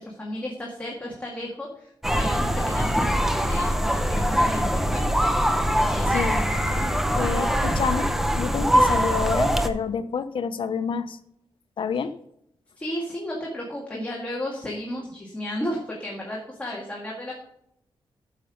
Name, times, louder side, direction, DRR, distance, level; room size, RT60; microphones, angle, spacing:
voice 1, 0.0-5.2 5.8-6.6 12.8-17.3, left 1 dB, 15° left, -3 dB, 1.9 m, -34 dB
sound 1, 2.0-9.7, equal, 5° right, 0.8 m, -23 dB
voice 2, 6.1-6.4 7.1-11.2 11.8-12.1, left 6 dB, 65° left, 12 dB, 0.7 m, -28 dB
10.0 x 6.6 x 5.1 m, 0.77 s
wide cardioid pair, 130°, 9 cm